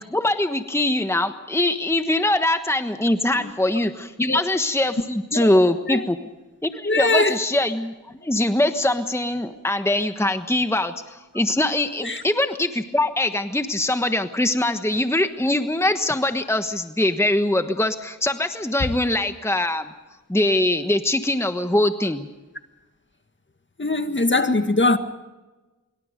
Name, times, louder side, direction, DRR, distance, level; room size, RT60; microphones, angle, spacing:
voice 1, 0.0-6.2 6.6-7.9 8.2-19.9 20.3-22.3, left 1 dB, 10° left, 1.3 m, -22 dB
voice 2, 6.8-7.4 12.0-12.2 23.8-25.0, left 2 dB, 35° left, 1.8 m, -21 dB
25.0 x 23.0 x 5.3 m
cardioid pair, 50°, 32 cm